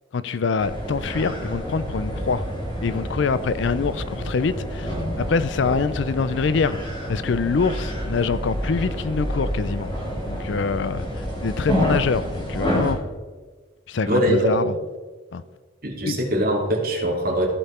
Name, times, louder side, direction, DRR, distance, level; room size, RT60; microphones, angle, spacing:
voice 1, 0.1-2.4 2.8-9.9 10.3-13.0 13.9-14.7 15.3-15.4 16.0-16.2, left 5 dB, 65° left, 0.4 m, -25 dB
sound 1, 0.6-12.9, equal, 20° left, 2.4 m, -28 dB
voice 2, 14.1-14.6 15.8-17.5, right 1 dB, 45° right, 2.5 m, -22 dB
15.0 x 5.5 x 4.3 m
head